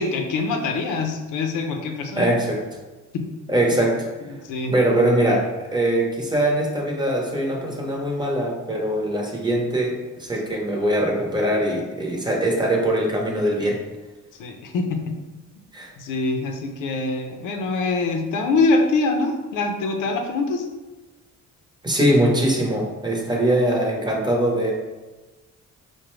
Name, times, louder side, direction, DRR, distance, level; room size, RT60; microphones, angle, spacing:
voice 1, 0.0-2.4 3.1-3.3 4.3-4.7 14.4-15.2 16.0-20.7, left 3 dB, 85° left, 5 dB, 0.6 m, -24 dB
voice 2, 2.2-2.6 3.5-4.1 4.7-5.5 5.7-9.9 10.2-13.8 15.7-15.9 21.8-24.7, right 1 dB, 15° right, -1 dB, 0.9 m, -22 dB
4.8 x 2.2 x 3.1 m, 1.2 s
cardioid pair, 90°, 30 cm